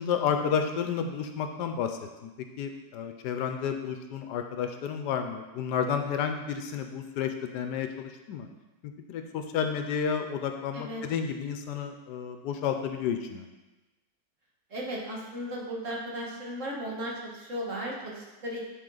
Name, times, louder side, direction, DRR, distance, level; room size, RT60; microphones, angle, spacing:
voice 1, 0.0-2.3 2.6-8.5 9.1-13.4, left 7 dB, 80° left, 6 dB, 1.2 m, -31 dB
voice 2, 14.7-18.6, equal, 50° right, -3 dB, 1.6 m, -36 dB
10.5 x 4.0 x 3.9 m, 1.1 s
omnidirectional pair, 1.9 m